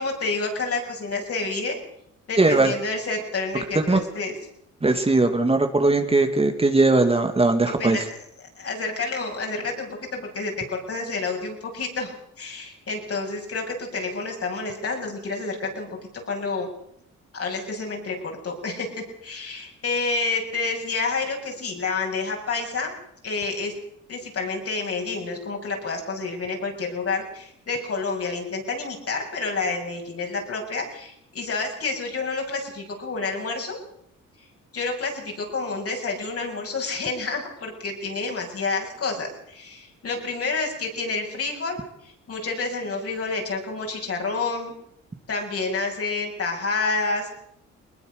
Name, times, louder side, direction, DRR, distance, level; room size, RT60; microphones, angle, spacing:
voice 1, 0.0-1.8 2.3-4.4 7.8-8.0 8.6-15.9 16.2-16.7 17.3-22.9 23.2-23.7 24.1-33.8 34.7-44.7 45.3-47.3, left 3 dB, 50° left, 1 dB, 7.2 m, -29 dB
voice 2, 2.4-2.7 3.7-4.0 4.8-8.0, right 2 dB, 20° right, 6 dB, 2.2 m, -19 dB
21.0 x 20.5 x 6.6 m, 0.74 s
cardioid pair, 90°, 30 cm